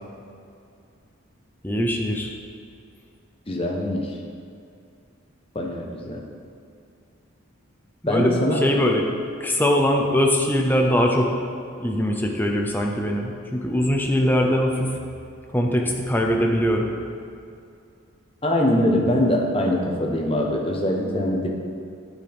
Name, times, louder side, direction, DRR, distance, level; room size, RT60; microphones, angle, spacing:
voice 1, 1.6-2.3 8.0-9.1 9.4-11.3 11.8-14.9 15.5-16.9, equal, 10° left, 1 dB, 0.7 m, -21 dB
voice 2, 3.5-4.1 5.5-6.2 8.1-8.6 18.4-21.5, left 1 dB, 25° left, 0 dB, 1.0 m, -22 dB
9.6 x 8.4 x 3.5 m, 2.4 s
head